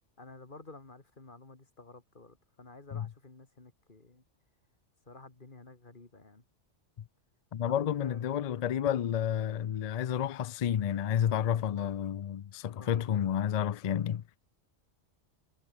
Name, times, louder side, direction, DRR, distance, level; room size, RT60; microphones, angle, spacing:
voice 1, 0.2-4.2 5.1-6.4 7.7-8.4 12.7-13.4, left 3 dB, 45° left, 2.7 m, -52 dB
voice 2, 7.5-14.2, left 9 dB, 65° left, 0.3 m, -30 dB
omnidirectional pair, 1.2 m